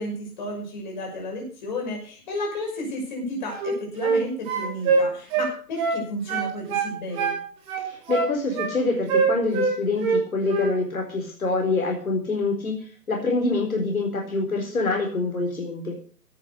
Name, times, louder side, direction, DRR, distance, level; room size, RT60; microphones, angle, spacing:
voice 1, 0.0-7.3, left 1 dB, 30° left, 0 dB, 6.1 m, -32 dB
sound 1, 3.5-4.2 4.5-6.0 6.3-7.4 7.7-8.7 9.1-10.2 10.5-10.7, right 4 dB, 10° right, 3.4 m, -23 dB
voice 2, 7.8-15.9, left 3 dB, 55° left, 1 dB, 4.3 m, -26 dB
17.0 x 7.2 x 6.6 m, 0.42 s
figure-of-eight pair, 160°, 48 cm